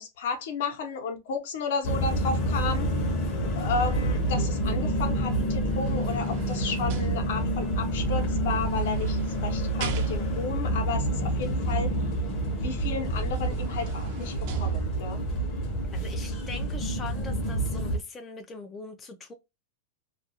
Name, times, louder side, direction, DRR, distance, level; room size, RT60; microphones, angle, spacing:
voice 1, 0.0-2.9 3.5-11.9 12.5-15.2, left 5 dB, 65° left, 0.8 m, -33 dB
sound 1, 1.8-18.0, right 1 dB, 35° left, 0.7 m, -28 dB
sound 2, 5.5-7.8 8.6-10.6 12.8-12.9 13.3-15.3 15.9-16.0, right 8 dB, 50° right, 0.5 m, -38 dB
voice 2, 15.9-19.3, left 4 dB, 15° left, 0.3 m, -41 dB
2.3 x 2.2 x 2.7 m
supercardioid pair, 155°, 0 cm